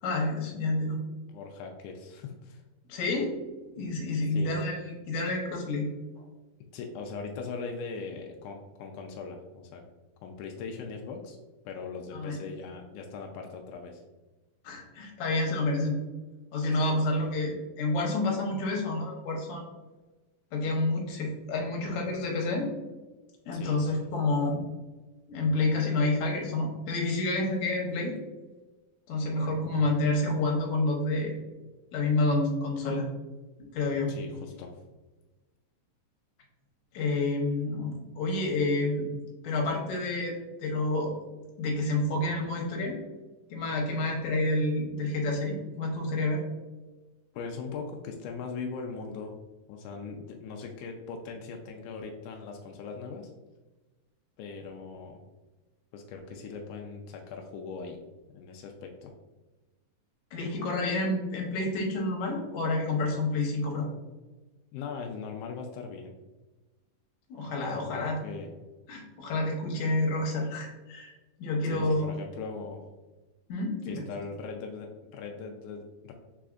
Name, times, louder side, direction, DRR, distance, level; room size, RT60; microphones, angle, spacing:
voice 1, 0.0-1.0 2.9-3.3 3.7-5.9 12.1-12.4 14.6-16.0 16.5-19.7 20.5-22.7 23.5-24.6 25.3-28.1 29.1-31.4 31.9-33.1 33.6-34.2 36.9-39.1 39.4-41.1 41.6-43.0 43.5-46.4 60.3-63.9 67.3-68.2 68.9-71.1 71.4-72.1 73.5-74.0, left 2 dB, 70° left, 0 dB, 1.9 m, -29 dB
voice 2, 1.3-2.6 4.3-4.5 6.7-9.8 10.2-11.4 11.6-14.0 16.8-17.0 23.5-23.8 34.1-34.8 47.3-49.3 49.7-53.3 54.4-55.2 55.9-58.0 58.3-59.1 64.7-66.1 67.7-68.5 71.6-72.8 73.8-76.1, left 4 dB, 85° left, 2 dB, 1.7 m, -40 dB
4.8 x 4.1 x 2.4 m, 1.2 s
omnidirectional pair, 4.1 m